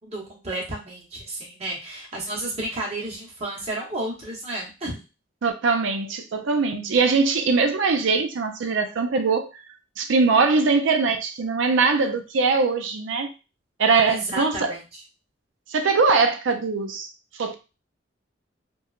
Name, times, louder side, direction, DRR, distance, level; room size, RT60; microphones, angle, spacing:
voice 1, 0.0-5.0 14.1-15.0, right 1 dB, 35° right, 0.9 m, -32 dB
voice 2, 5.4-9.5 10.0-13.3 13.8-14.7 15.7-17.1 17.4-17.5, right 4 dB, 80° right, 0.5 m, -21 dB
2.9 x 2.3 x 2.4 m
head